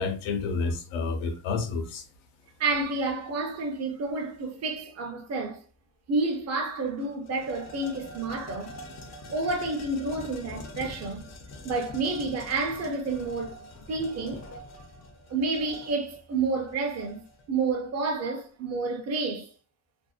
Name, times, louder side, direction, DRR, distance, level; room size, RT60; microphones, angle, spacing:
voice 1, 0.0-2.0, left 4 dB, 80° left, 0.7 m, -29 dB
voice 2, 2.6-5.6 6.1-8.8 9.3-11.2 11.6-13.6 13.9-14.4 15.3-17.2 17.5-19.5, right 3 dB, 35° right, 0.6 m, -29 dB
sound 1, 6.3-6.4 6.8-17.5, left 1 dB, 35° left, 0.5 m, -45 dB
2.5 x 2.1 x 2.4 m
cardioid pair, 115°, 47 cm